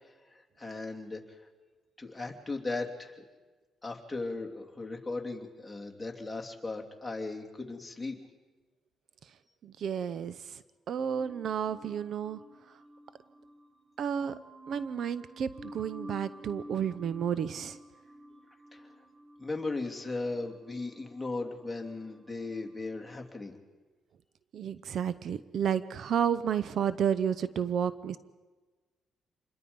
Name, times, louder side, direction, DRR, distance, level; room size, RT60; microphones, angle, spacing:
voice 1, 0.3-1.2 2.0-3.1 3.8-8.2 18.7-18.8 19.4-23.6, left 3 dB, 10° left, 1 dB, 2.9 m, -37 dB
voice 2, 9.6-10.6 10.9-12.4 14.0-14.3 14.7-17.8 24.5-28.2, right 8 dB, 65° right, 15 dB, 0.7 m, -31 dB
sound 1, 11.1-23.3, right 1 dB, 30° right, 1.8 m, -51 dB
27.0 x 21.5 x 5.4 m, 1.3 s
cardioid pair, 90°, 0 cm